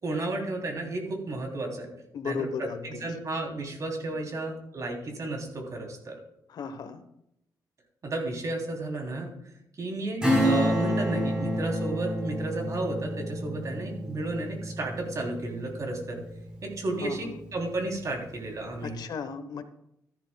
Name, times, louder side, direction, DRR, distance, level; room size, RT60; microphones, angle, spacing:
voice 1, 0.0-1.9 2.2-6.1 8.0-9.3 9.8-16.2 16.6-19.0, right 2 dB, 50° right, 2 dB, 3.2 m, -33 dB
voice 2, 2.1-3.0 6.5-7.0 17.0-17.3 18.8-19.6, left 5 dB, 65° left, 10 dB, 1.0 m, -35 dB
Acoustic guitar / Strum, 10.2-16.4 16.8-16.9, equal, 10° right, 4.1 m, -28 dB
13.5 x 11.5 x 2.3 m, 0.78 s
cardioid pair, 100°, 7 cm